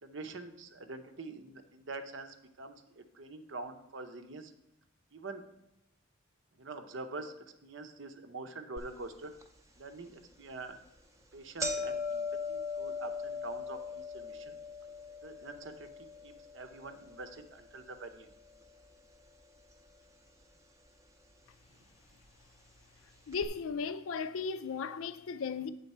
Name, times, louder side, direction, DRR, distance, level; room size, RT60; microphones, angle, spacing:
voice 1, 0.0-4.5 5.1-5.5 6.6-7.4 7.6-9.3 9.8-10.8 11.3-14.6 15.2-18.3, right 3 dB, 60° right, 0.7 m, -45 dB
sound 1, 8.8-8.9 9.4-9.5 10.3-10.5 10.9-11.0 11.2-19.4 19.7-20.4 21.2-21.3 22.3-22.4 22.7-22.8 23.3-23.5, left 3 dB, 15° right, 0.6 m, -40 dB
voice 2, 23.3-25.7, left 5 dB, 80° left, 0.4 m, -36 dB
8.2 x 3.9 x 5.4 m
head